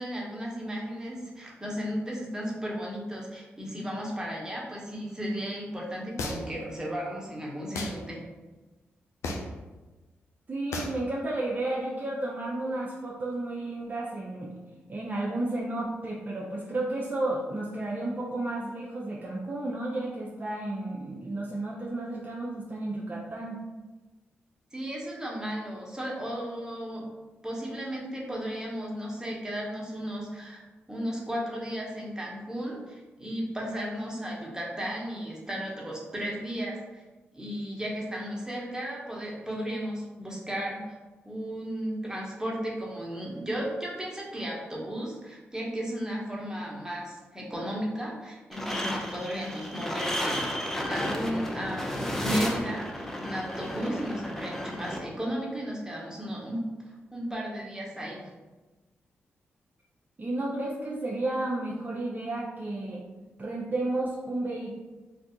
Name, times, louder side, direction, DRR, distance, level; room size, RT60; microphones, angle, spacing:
voice 1, 0.0-8.2 24.7-27.0 27.4-30.6 30.9-37.0 37.3-41.0 41.2-58.3, equal, 15° right, -4 dB, 1.1 m, -34 dB
sound 1, 6.2-6.6 7.7-8.0 9.2-9.6 10.7-11.0, left 2 dB, 75° left, 0.5 m, -33 dB
voice 2, 10.5-14.5 14.9-23.6 60.2-63.0 63.4-64.8, right 2 dB, 35° right, -3 dB, 0.5 m, -32 dB
sound 2, 48.5-55.0, equal, 10° left, 0.7 m, -33 dB
2.6 x 2.3 x 3.7 m, 1.2 s
hypercardioid pair, 40°, 5 cm